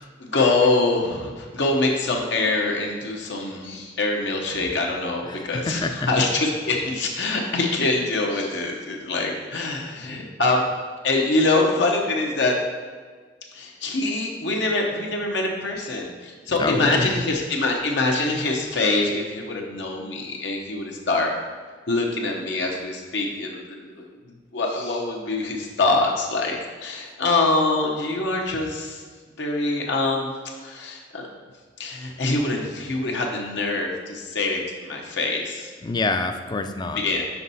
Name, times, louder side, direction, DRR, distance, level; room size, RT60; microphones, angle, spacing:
voice 1, 0.2-12.6 13.5-21.3 21.9-26.6 26.8-29.0 29.4-30.3 30.6-31.3 31.8-35.7 36.9-37.3, left 2 dB, 75° left, 0 dB, 0.8 m, -24 dB
voice 2, 5.3-6.1 16.6-17.2 35.8-37.0, left 3 dB, 25° left, 7 dB, 0.4 m, -26 dB
5.8 x 5.4 x 4.0 m, 1.5 s
head